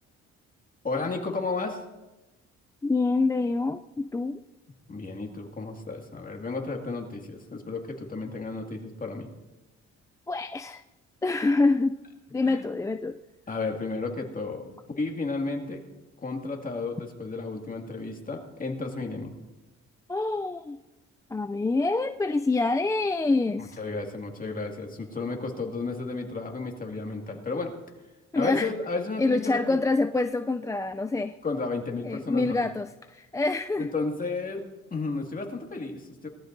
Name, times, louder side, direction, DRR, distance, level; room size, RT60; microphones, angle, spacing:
voice 1, 0.8-1.8 4.9-9.3 12.5-12.6 13.5-15.8 16.2-19.3 23.6-27.7 28.3-29.8 31.4-32.6 33.8-34.6 34.9-36.3, left 3 dB, 30° left, 2 dB, 2.2 m, -33 dB
voice 2, 2.8-4.4 10.3-10.8 11.2-12.0 12.3-13.2 20.1-20.8 21.3-23.8 28.3-28.7 29.2-31.4 32.0-33.9, left 3 dB, 10° left, 8 dB, 0.3 m, -26 dB
19.5 x 13.5 x 2.7 m, 1.0 s
cardioid pair, 90°, 30 cm